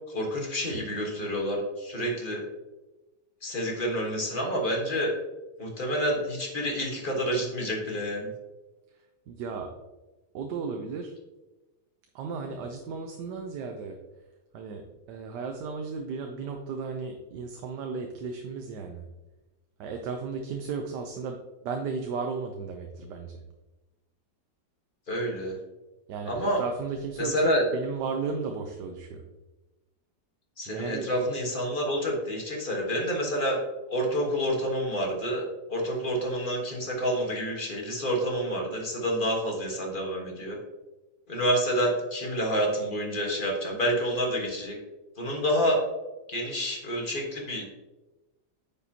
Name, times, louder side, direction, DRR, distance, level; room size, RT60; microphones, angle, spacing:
voice 1, 0.1-2.4 3.4-5.1 5.6-8.3 25.1-25.5 26.2-26.6 27.2-27.6 30.6-33.6 33.9-35.4 35.7-40.6 41.3-44.7 45.2-45.8 46.3-47.7, equal, 30° left, 0 dB, 1.5 m, -28 dB
voice 2, 9.3-9.7 10.3-11.1 12.1-14.0 14.5-14.8 15.1-19.0 19.8-21.4 21.6-23.3 26.1-29.2 30.7-31.1, right 5 dB, 80° right, 3 dB, 1.3 m, -34 dB
9.3 x 5.3 x 2.8 m, 1.1 s
omnidirectional pair, 1.8 m